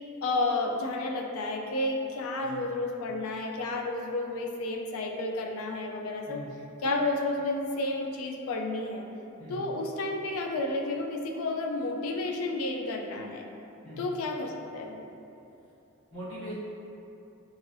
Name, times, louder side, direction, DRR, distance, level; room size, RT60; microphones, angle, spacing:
voice 1, 0.2-6.4 6.8-9.0 9.5-13.5 14.0-15.0, left 2 dB, 70° left, 1 dB, 0.3 m, -31 dB
voice 2, 16.1-16.5, equal, 20° left, -14 dB, 1.2 m, -41 dB
3.1 x 2.6 x 2.5 m, 2.8 s
head